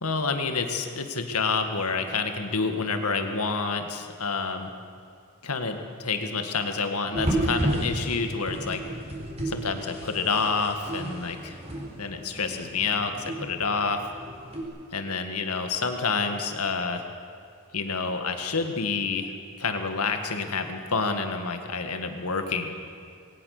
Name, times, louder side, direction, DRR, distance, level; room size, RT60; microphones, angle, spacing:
voice 1, 0.0-4.7 5.4-8.8 9.5-11.6 12.0-14.0 14.9-17.0 17.7-19.3 19.6-22.7, left 4 dB, 85° left, 6 dB, 2.0 m, -28 dB
sound 1, 7.1-14.6, right 1 dB, 30° right, 4.4 m, -32 dB
21.5 x 18.5 x 6.7 m, 2.5 s
head